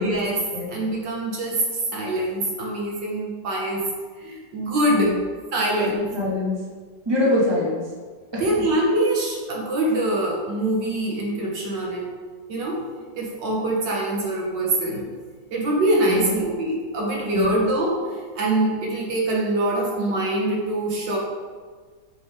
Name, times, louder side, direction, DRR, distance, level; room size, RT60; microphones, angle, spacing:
voice 1, 0.0-1.6 1.9-3.8 4.2-5.1 5.5-6.1 8.4-12.1 12.5-12.8 13.1-15.1 15.5-21.2, right 1 dB, 75° right, -2 dB, 2.1 m, -24 dB
voice 2, 5.8-6.7 7.1-7.8 8.3-8.4 16.1-16.4 17.3-17.5, left 2 dB, 15° right, -6 dB, 2.0 m, -24 dB
9.2 x 6.2 x 3.8 m, 1.5 s
omnidirectional pair, 2.0 m